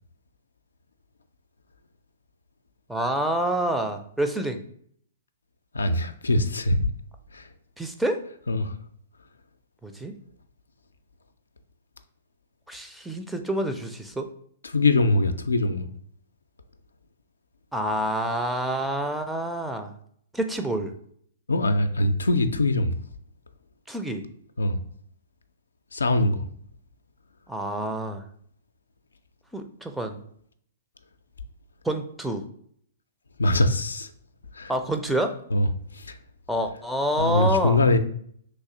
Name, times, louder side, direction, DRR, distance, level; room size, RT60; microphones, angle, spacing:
voice 1, 2.9-4.6 7.8-8.2 9.8-10.1 12.7-14.3 17.7-19.9 20.3-20.9 23.9-24.2 27.5-28.2 29.5-30.2 31.8-32.4 34.7-35.3 36.5-37.8, right 1 dB, 5° right, 0.4 m, -27 dB
voice 2, 5.7-6.9 7.3-7.5 8.5-8.7 14.6-15.9 21.5-23.0 24.6-24.8 25.9-26.5 33.4-34.1 34.5-34.7 35.5-35.7 35.9-36.2 37.2-38.0, left 2 dB, 80° left, 0.3 m, -22 dB
3.2 x 2.6 x 3.6 m
figure-of-eight pair, 115°, 0 cm